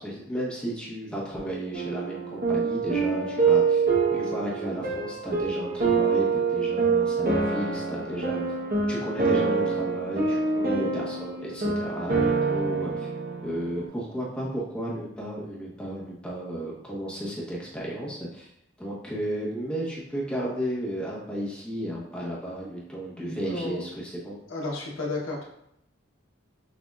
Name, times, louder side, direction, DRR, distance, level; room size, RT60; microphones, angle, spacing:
voice 1, 0.0-3.8 4.1-8.4 8.9-13.1 13.4-18.5 18.8-24.3, equal, 5° left, -6 dB, 1.1 m, -33 dB
sound 1, 1.7-13.9, right 4 dB, 50° right, 0.9 m, -26 dB
voice 2, 23.1-23.8 24.5-25.4, left 2 dB, 85° left, -2 dB, 1.0 m, -33 dB
6.4 x 2.7 x 2.4 m, 0.78 s
head